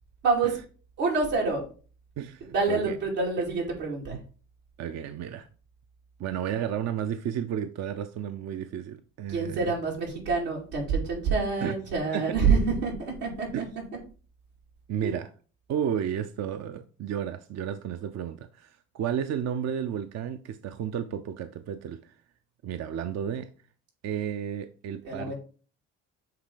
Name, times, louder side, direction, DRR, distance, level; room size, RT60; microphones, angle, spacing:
voice 1, 1.0-1.6 2.5-4.2 9.3-13.6 15.0-15.1 25.0-25.3, right 4 dB, 85° right, 2.5 m, -27 dB
voice 2, 2.2-3.0 4.1-4.2 4.8-5.5 6.2-9.7 11.6-11.7 12.1-12.3 13.5-13.7 14.9-15.3 15.7-22.1 22.6-23.5 24.0-25.3, right 9 dB, 50° right, 0.5 m, -32 dB
7.6 x 3.3 x 3.8 m
supercardioid pair, 65°, 34 cm